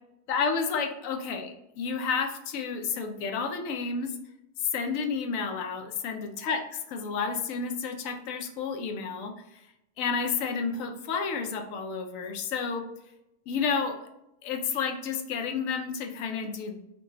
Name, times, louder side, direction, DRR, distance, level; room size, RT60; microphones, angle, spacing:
voice 1, 0.3-4.1 4.7-9.3 10.0-12.9 13.5-14.1 14.4-16.8, left 5 dB, 70° left, 5 dB, 0.9 m, -31 dB
4.9 x 2.3 x 3.6 m, 0.86 s
omnidirectional pair, 1.7 m